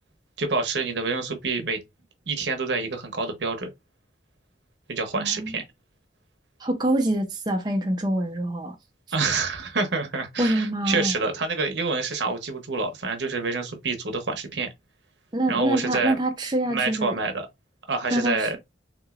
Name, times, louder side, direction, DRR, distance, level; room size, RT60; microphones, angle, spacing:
voice 1, 0.4-1.8 2.3-3.7 4.9-5.6 9.1-14.7 15.5-16.2 16.7-17.5 17.9-18.6, right 4 dB, 75° right, 0.9 m, -27 dB
voice 2, 5.1-5.6 6.6-8.8 10.4-11.1 15.3-17.2 18.1-18.6, right 1 dB, 25° right, 0.5 m, -25 dB
3.7 x 3.0 x 2.4 m
head